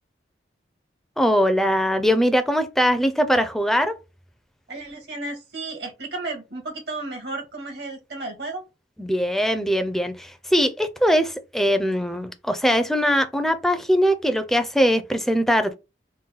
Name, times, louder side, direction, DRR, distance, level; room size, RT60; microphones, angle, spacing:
voice 1, 1.2-4.0 9.0-15.7, equal, ahead, 0.4 m, -21 dB
voice 2, 4.7-8.6, right 2 dB, 65° right, 1.6 m, -33 dB
3.8 x 2.1 x 4.0 m
head